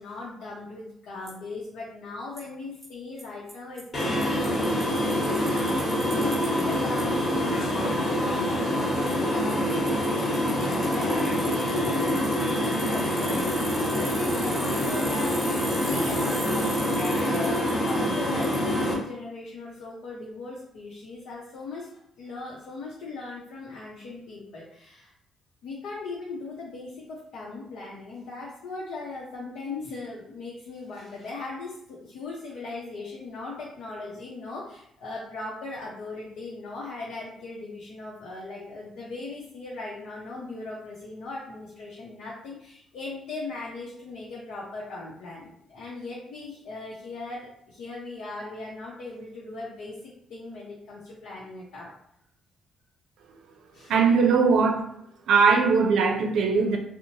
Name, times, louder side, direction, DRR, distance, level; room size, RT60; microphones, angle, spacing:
voice 1, 0.0-25.1 25.6-51.9 53.7-53.9, left 3 dB, 85° left, -6 dB, 0.6 m, -39 dB
Bicycle, 1.3-1.4 2.4-2.5 2.8-2.9 3.2-3.3 3.5-3.6 3.8-6.6 7.0-7.1 9.1-9.2 9.5-17.9 18.4-18.6, right 1 dB, 20° right, 0.9 m, -39 dB
sound 1, 3.9-18.9, equal, 40° left, 1.2 m, -26 dB
voice 2, 53.9-54.9 55.3-56.8, right 5 dB, 75° right, 4 dB, 0.5 m, -20 dB
2.9 x 2.0 x 2.8 m, 0.73 s
cardioid pair, 90°, 0 cm